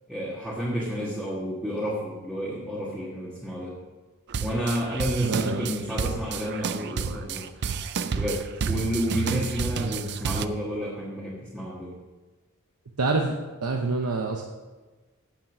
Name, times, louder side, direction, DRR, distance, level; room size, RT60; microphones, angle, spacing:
voice 1, 0.1-3.7 4.4-7.5 8.2-11.9, equal, 5° right, -8 dB, 1.5 m, -31 dB
sound 1, 4.3-10.5, right 5 dB, 50° right, 0.4 m, -30 dB
voice 2, 5.2-5.7 9.3-9.4 13.0-14.4, right 3 dB, 90° right, 2 dB, 0.8 m, -26 dB
9.2 x 7.4 x 6.1 m, 1.3 s
head